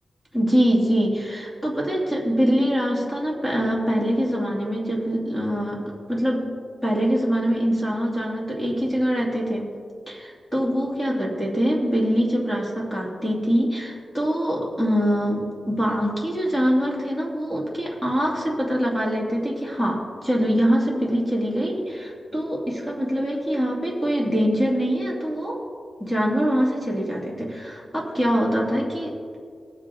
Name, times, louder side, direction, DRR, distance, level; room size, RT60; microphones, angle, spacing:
voice 1, 0.3-6.5 6.8-9.7 10.1-25.6 26.0-29.1, equal, 10° left, -3 dB, 2.6 m, -24 dB
19.5 x 7.5 x 3.8 m, 2.2 s
wide cardioid pair, 120°, 0 cm